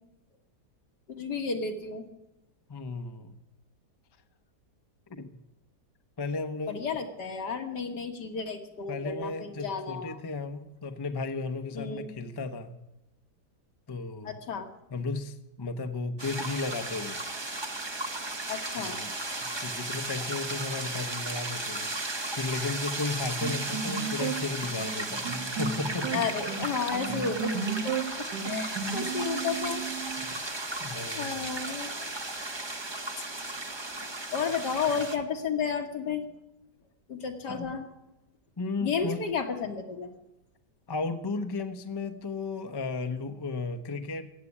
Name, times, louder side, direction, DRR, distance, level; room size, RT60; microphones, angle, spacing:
voice 1, 1.1-2.1 6.7-10.2 11.7-12.1 14.2-14.7 18.5-19.0 26.1-28.1 28.5-29.8 31.2-32.1 34.3-36.2 37.1-37.9 38.8-40.1, left 5 dB, 75° left, 5 dB, 2.1 m, -32 dB
voice 2, 2.7-3.3 5.1-5.3 6.2-6.8 8.9-12.8 13.9-14.4 14.9-17.2 18.8-19.1 19.4-26.3 28.4-28.5 30.2-31.4 37.5-37.7 38.6-39.2 40.9-44.3, left 3 dB, 25° left, 8 dB, 0.6 m, -35 dB
sound 1, 16.2-35.2, right 2 dB, 25° right, 0.6 m, -35 dB
sound 2, 23.4-30.4, right 6 dB, 80° right, 1.9 m, -34 dB
15.0 x 8.5 x 9.8 m, 0.93 s
omnidirectional pair, 1.8 m